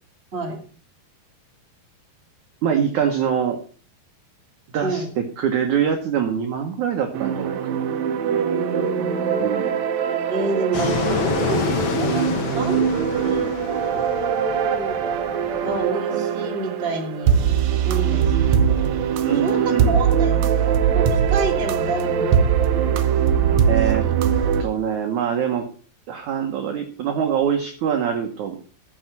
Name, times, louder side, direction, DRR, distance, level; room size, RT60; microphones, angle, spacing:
voice 1, 2.6-3.6 4.7-8.0 9.4-9.8 19.2-20.0 23.7-24.1 24.6-25.7 26.1-28.6, right 8 dB, 65° right, 4 dB, 2.0 m, -24 dB
voice 2, 4.8-5.1 8.3-9.6 10.3-13.4 13.9-15.0 15.6-19.1 19.4-22.4 23.7-24.1, right 2 dB, 20° right, 1 dB, 2.0 m, -29 dB
sound 1, 7.1-24.6, right 8 dB, 85° right, 1.5 m, -21 dB
Fixed-wing aircraft airplane, 10.7-15.9, left 7 dB, 65° left, 1.5 m, -28 dB
14.5 x 6.3 x 5.8 m, 0.43 s
omnidirectional pair, 4.6 m